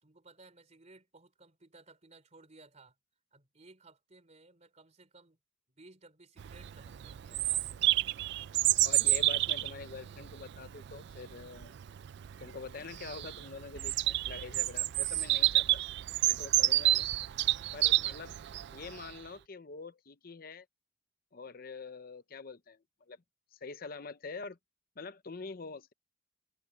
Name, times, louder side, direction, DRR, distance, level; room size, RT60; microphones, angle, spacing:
voice 1, 0.0-2.9 3.3-5.4 5.7-7.7, right 3 dB, 35° right, 3.1 m, -58 dB
Bird vocalization bird call bird song, 6.4-19.1, right 16 dB, 60° right, 0.3 m, -30 dB
voice 2, 8.8-11.7 12.4-15.8 16.2-17.1 17.7-18.4 18.7-20.7 21.3-22.8 23.1-23.2 23.5-24.6 25.0-25.9, left 4 dB, 50° left, 0.7 m, -45 dB
head